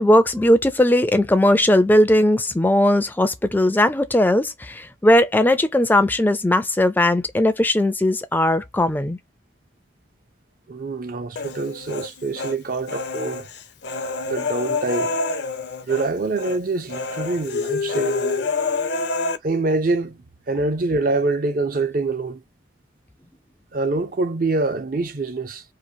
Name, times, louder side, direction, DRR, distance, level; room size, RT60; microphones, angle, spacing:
voice 1, 0.0-9.2, left 1 dB, 10° left, 0.4 m, -18 dB
voice 2, 10.7-13.5 14.3-15.1 15.9-18.4 19.4-22.4 23.7-25.6, right 3 dB, 50° right, 0.5 m, -25 dB
Human voice, 11.4-12.6 12.9-16.1 16.4-16.6 16.9-19.4, left 3 dB, 65° left, 0.5 m, -27 dB
2.9 x 2.5 x 2.7 m
head